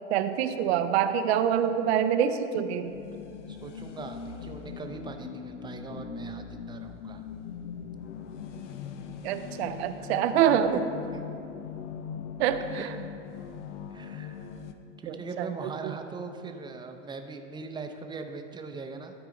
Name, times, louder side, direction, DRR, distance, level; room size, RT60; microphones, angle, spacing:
voice 1, 0.1-2.9 9.2-10.8 12.4-12.9 15.1-15.5 15.8-15.9, right 9 dB, 65° right, 9 dB, 0.6 m, -26 dB
sound 1, 2.8-14.7, left 6 dB, 80° left, 0.6 m, -41 dB
voice 2, 3.5-7.3 11.1-11.2 12.7-12.9 13.9-14.5 15.0-19.1, right 4 dB, 15° right, 5 dB, 0.6 m, -41 dB
12.5 x 4.7 x 3.8 m, 2.6 s
hypercardioid pair, 95°, 35 cm